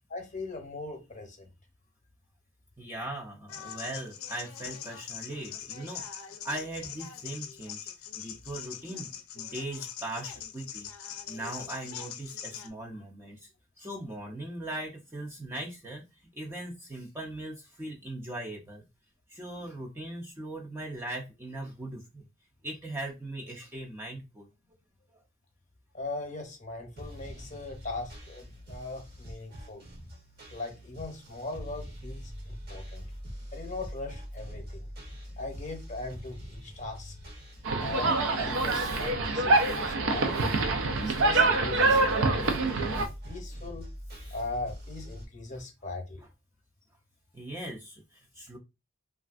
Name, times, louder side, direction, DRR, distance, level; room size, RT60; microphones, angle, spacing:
voice 1, 0.1-1.5 8.2-8.4 25.9-29.8 30.5-33.1 33.5-34.9 35.4-37.1 37.8-40.6 41.1-43.9 44.3-46.2, left 2 dB, 35° left, 0.8 m, -40 dB
voice 2, 2.8-10.9 11.3-13.5 13.8-18.8 19.3-22.3 22.6-24.5 25.1-25.2 37.7-37.8 41.1-41.2 47.3-48.6, right 1 dB, 10° right, 0.5 m, -40 dB
sound 1, 3.5-12.7, left 9 dB, 80° left, 0.5 m, -42 dB
sound 2, 27.0-45.3, equal, 45° right, 0.9 m, -43 dB
sound 3, 37.7-43.1, right 3 dB, 65° right, 0.5 m, -25 dB
3.2 x 2.4 x 2.4 m
head